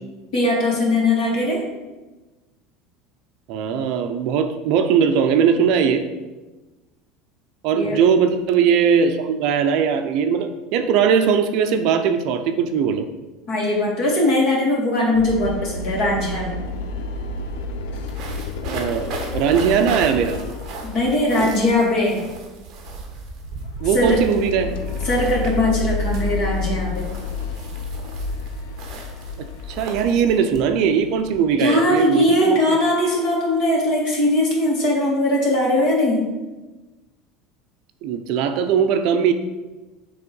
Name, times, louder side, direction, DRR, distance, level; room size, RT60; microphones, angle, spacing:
voice 1, 0.3-1.6 7.7-8.0 13.5-16.6 20.9-22.2 23.9-24.2 25.0-27.1 31.6-36.2, left 1 dB, 45° left, -2 dB, 2.2 m, -20 dB
voice 2, 3.5-6.0 7.6-13.1 18.6-20.4 21.4-21.5 23.8-24.7 29.4-32.6 38.0-39.3, right 7 dB, 50° right, 7 dB, 0.5 m, -20 dB
sound 1, 15.1-21.9 22.2-22.5 22.9-23.0 23.4-30.2, left 4 dB, 80° left, 0.7 m, -30 dB
sound 2, 16.6-16.7 16.9-31.4, right 3 dB, 35° right, 1.2 m, -36 dB
8.5 x 3.5 x 5.3 m, 1.2 s
cardioid pair, 175°, 0 cm